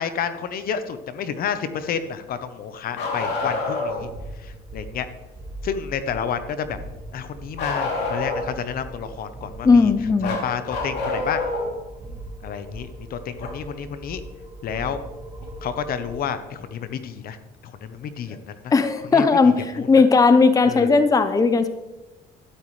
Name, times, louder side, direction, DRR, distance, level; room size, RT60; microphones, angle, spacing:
voice 1, 0.0-5.1 5.6-6.8 7.1-9.9 10.2-11.4 12.4-14.2 14.6-15.0 15.6-17.4 17.6-18.7 19.0-19.9 20.6-20.9, left 7 dB, 60° left, 11 dB, 1.0 m, -30 dB
Bark, 2.9-4.0 7.6-8.6 10.2-11.7 13.4-13.5 15.4-15.5 16.6-16.7, left 3 dB, 80° left, 3.1 m, -27 dB
sound 1, 3.9-16.2, right 1 dB, 20° right, 1.9 m, -40 dB
voice 2, 9.6-10.4 18.7-21.7, left 4 dB, 20° left, 10 dB, 0.7 m, -17 dB
12.5 x 12.0 x 3.3 m, 1.1 s
cardioid pair, 110°, 17 cm